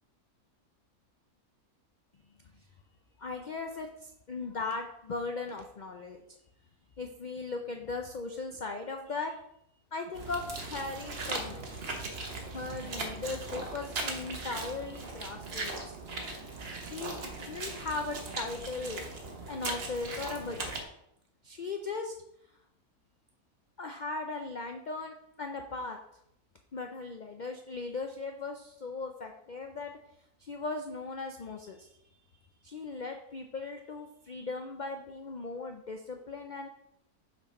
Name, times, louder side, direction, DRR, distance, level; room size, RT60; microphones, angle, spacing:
voice 1, 3.2-6.2 7.0-9.4 9.9-11.7 12.5-16.0 16.8-19.1 19.5-20.7 21.4-22.1 23.8-26.0 26.7-29.9 30.4-31.9 32.6-36.7, left 3 dB, 70° left, 4 dB, 0.4 m, -38 dB
sound 1, 10.1-20.8, right 3 dB, 45° right, 1.2 m, -39 dB
6.0 x 4.5 x 5.2 m, 0.78 s
omnidirectional pair, 1.5 m